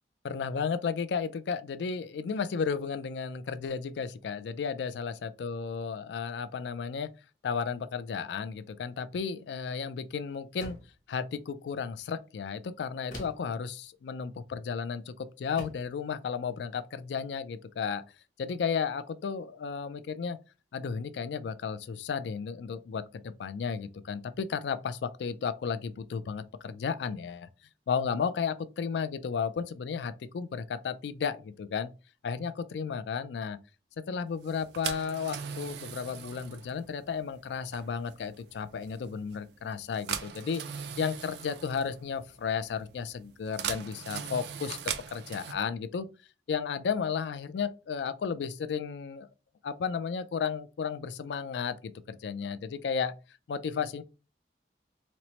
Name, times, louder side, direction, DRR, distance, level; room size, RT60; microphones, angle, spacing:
voice 1, 0.2-7.1 7.4-10.8 11.1-18.0 18.4-20.4 20.7-27.5 27.9-31.9 32.2-33.6 34.1-40.6 41.0-46.1 46.5-49.3 49.6-53.1 53.5-54.0, left 6 dB, 85° left, 0.3 m, -33 dB
sound 1, 10.6-11.0 13.1-13.6 14.9-15.0 15.6-15.9, left 1 dB, 45° left, 0.8 m, -44 dB
sound 2, 34.4-45.5, right 8 dB, 75° right, 0.4 m, -40 dB
4.2 x 2.0 x 2.9 m
head